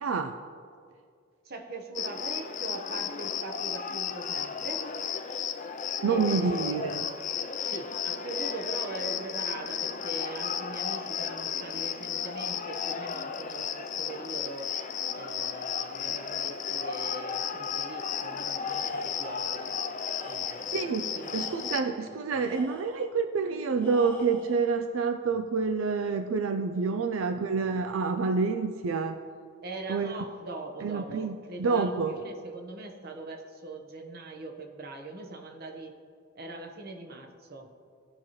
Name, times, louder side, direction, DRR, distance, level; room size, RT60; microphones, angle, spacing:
voice 1, 0.0-0.4 6.0-7.1 20.7-29.2 29.9-30.2 30.8-32.1, right 5 dB, 85° right, 7 dB, 0.4 m, -28 dB
voice 2, 1.5-4.9 6.1-6.8 7.6-14.7 15.1-19.8 20.2-21.5 29.6-35.9 36.3-37.7, right 2 dB, 50° right, 3 dB, 1.1 m, -41 dB
Cricket, 2.0-21.8, left 7 dB, 40° left, 0.5 m, -34 dB
Tools, 18.6-19.5 20.0-20.8 21.2-23.1 23.8-24.7, left 2 dB, 10° left, 1.2 m, -47 dB
17.0 x 5.8 x 3.1 m, 2.2 s
head